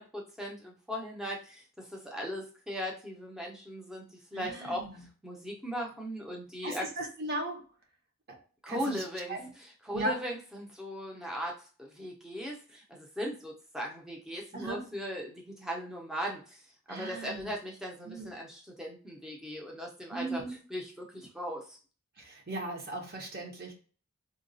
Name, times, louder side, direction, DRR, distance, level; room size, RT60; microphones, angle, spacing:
voice 1, 0.0-4.8 5.2-6.9 8.6-9.4 9.8-20.4 20.7-21.8, equal, 5° right, -1 dB, 0.5 m, -38 dB
voice 2, 4.3-5.0 6.6-7.6 8.7-9.0 9.3-9.5 9.9-10.2 14.5-14.8 16.9-17.5 18.0-18.3 20.1-20.6 22.2-23.7, right 2 dB, 45° right, 1 dB, 0.8 m, -37 dB
3.8 x 2.2 x 2.6 m, 0.39 s
head